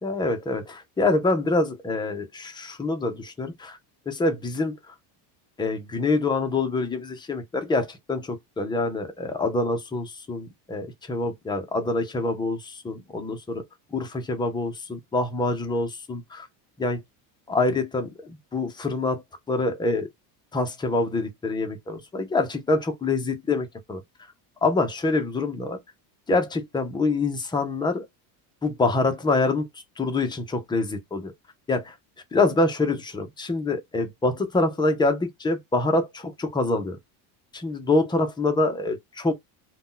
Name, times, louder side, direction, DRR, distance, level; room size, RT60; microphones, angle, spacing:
voice 1, 0.0-3.8 4.1-4.9 5.6-13.6 13.9-16.5 16.8-17.0 17.5-20.1 20.5-24.0 24.6-25.8 26.3-28.1 28.6-29.7 30.0-31.3 31.7-31.9 32.3-37.0 37.5-39.3, left 2 dB, 10° left, 0.5 m, -26 dB
2.6 x 2.2 x 3.7 m
cardioid pair, 140°, 47 cm